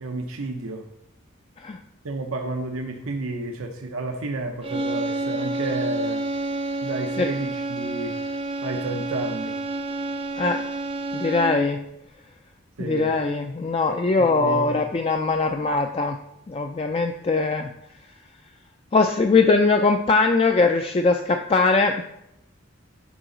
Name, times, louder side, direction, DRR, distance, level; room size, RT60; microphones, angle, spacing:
voice 1, 0.0-0.9 2.0-6.3 6.8-8.2 8.6-9.5 12.8-13.1 14.2-14.8, right 2 dB, 90° right, 3 dB, 0.8 m, -31 dB
sound 1, 4.6-11.8, right 2 dB, 25° right, 0.6 m, -29 dB
voice 2, 11.1-11.8 12.8-16.2 16.5-17.7 18.9-22.0, left 3 dB, 30° left, 4 dB, 0.3 m, -21 dB
11.0 x 4.0 x 3.9 m, 0.81 s
head